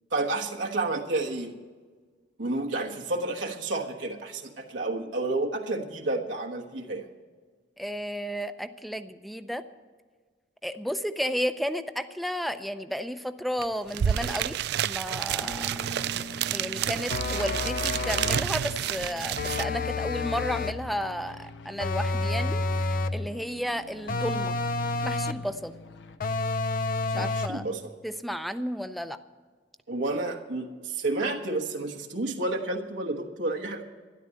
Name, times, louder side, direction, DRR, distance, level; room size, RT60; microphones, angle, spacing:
voice 1, 0.1-1.5 2.4-7.1 27.1-27.9 29.9-33.8, right 2 dB, 85° right, 1 dB, 1.3 m, -30 dB
voice 2, 7.8-9.6 10.6-15.7 16.2-24.6 25.0-25.7 27.1-27.6 28.0-29.2, equal, ahead, 11 dB, 0.5 m, -33 dB
sound 1, 13.6-13.7 13.9-19.6, right 10 dB, 60° right, 0.3 m, -30 dB
sound 2, 15.4-26.2, left 2 dB, 80° left, 1.0 m, -46 dB
sound 3, 17.1-18.6 19.4-20.9 21.8-23.3 24.1-25.5 26.2-27.7, left 3 dB, 50° left, 0.5 m, -29 dB
12.5 x 11.0 x 7.6 m, 1.5 s
head